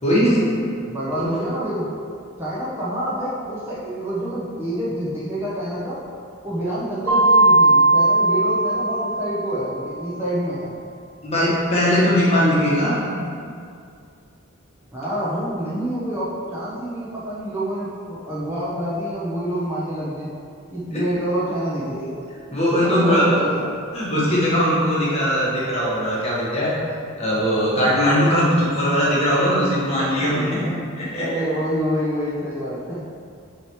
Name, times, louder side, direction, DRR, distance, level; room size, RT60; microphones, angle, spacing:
voice 1, 0.0-0.7 1.2-1.3 11.2-13.1 20.9-21.0 22.5-23.4 23.9-26.8 27.2-30.6 31.0-31.4, equal, 30° left, -7 dB, 1.4 m, -20 dB
voice 2, 0.9-1.9 2.4-6.0 6.4-10.7 14.9-20.3 20.7-22.2 22.8-23.7 30.1-30.8 31.2-33.0, equal, 10° right, -10 dB, 0.9 m, -27 dB
Mallet percussion, 7.1-9.7, right 2 dB, 70° right, 1.4 m, -17 dB
7.5 x 3.3 x 4.6 m, 2.4 s
head